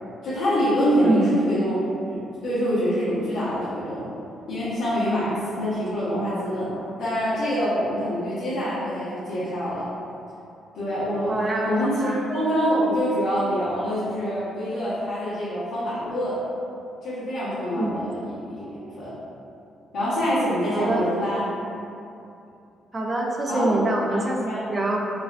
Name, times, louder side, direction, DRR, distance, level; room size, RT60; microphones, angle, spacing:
voice 1, 0.2-1.8 2.0-4.1 4.5-9.9 10.7-11.3 11.6-16.4 17.0-19.1 19.9-21.4 23.5-23.7 24.1-24.6, equal, 85° left, -15 dB, 1.1 m, -25 dB
voice 2, 11.3-12.2 17.7-17.9 20.7-21.1 22.9-25.1, right 2 dB, 20° right, -1 dB, 0.3 m, -25 dB
4.6 x 2.2 x 2.4 m, 2.7 s
cardioid pair, 175°, 0 cm